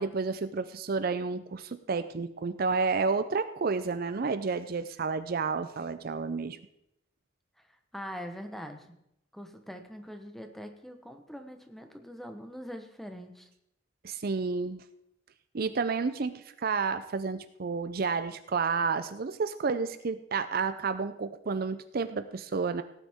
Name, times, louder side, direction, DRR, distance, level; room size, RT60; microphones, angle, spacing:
voice 1, 0.0-6.6 14.0-14.8 15.5-22.8, right 4 dB, 50° right, 11 dB, 0.5 m, -30 dB
voice 2, 7.6-9.0 9.3-13.5, equal, ahead, 6 dB, 1.0 m, -43 dB
17.5 x 9.1 x 3.6 m, 0.79 s
head